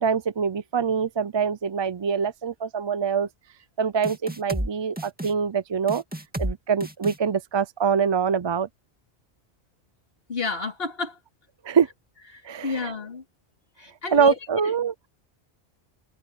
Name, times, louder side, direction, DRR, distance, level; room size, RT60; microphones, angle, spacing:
voice 1, 0.0-3.3 3.8-6.0 6.4-8.7 11.6-11.9 12.4-12.9 14.1-14.9, right 6 dB, 45° right, 0.3 m, -24 dB
sound 1, 4.0-4.7 5.0-5.3 5.9-6.5 6.8-7.2, right 1 dB, 10° right, 2.1 m, -30 dB
voice 2, 10.3-11.2 12.6-13.2 13.8-14.7, left 4 dB, 60° left, 2.7 m, -31 dB
omnidirectional pair, 1.1 m